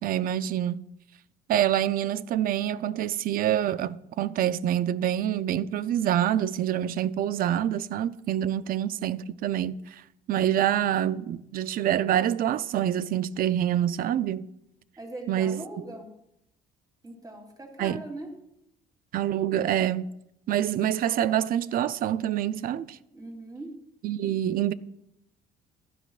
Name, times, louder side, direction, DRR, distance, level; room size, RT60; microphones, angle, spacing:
voice 1, 0.0-0.8 1.5-10.0 10.3-14.4 15.3-15.6 17.8-18.0 19.1-20.1 20.5-23.0 24.0-24.7, right 11 dB, 60° right, 0.5 m, -26 dB
voice 2, 15.0-16.1 17.0-18.3 23.1-23.8, right 2 dB, 20° right, 3.3 m, -40 dB
15.5 x 12.0 x 2.5 m
cardioid pair, 110°, 17 cm